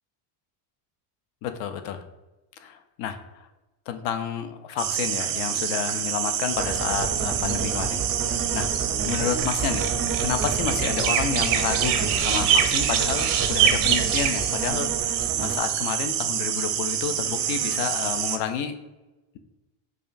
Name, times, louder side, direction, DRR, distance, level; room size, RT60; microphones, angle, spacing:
voice 1, 1.4-2.0 2.6-3.5 3.9-8.7 9.1-9.9 10.2-18.7, left 8 dB, 60° left, 8 dB, 0.5 m, -30 dB
sound 1, 4.8-18.4, right 9 dB, 85° right, 0.6 m, -25 dB
sound 2, 6.5-15.6, right 5 dB, 30° right, 0.5 m, -31 dB
4.9 x 2.4 x 2.5 m, 1.1 s
cardioid pair, 140°, 50 cm